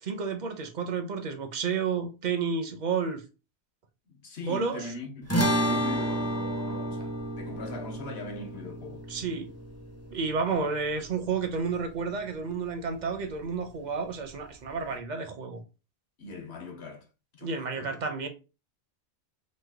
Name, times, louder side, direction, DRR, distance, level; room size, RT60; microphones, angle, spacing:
voice 1, 0.0-3.2 4.4-4.9 9.1-9.5 10.1-15.6 17.4-18.3, right 5 dB, 55° right, 0.5 m, -31 dB
voice 2, 4.1-9.1 16.2-17.1 17.3-17.9, left 3 dB, 70° left, 1.1 m, -40 dB
sound 1, 5.3-11.8, right 1 dB, 20° left, 0.5 m, -31 dB
3.1 x 2.1 x 3.3 m
omnidirectional pair, 1.1 m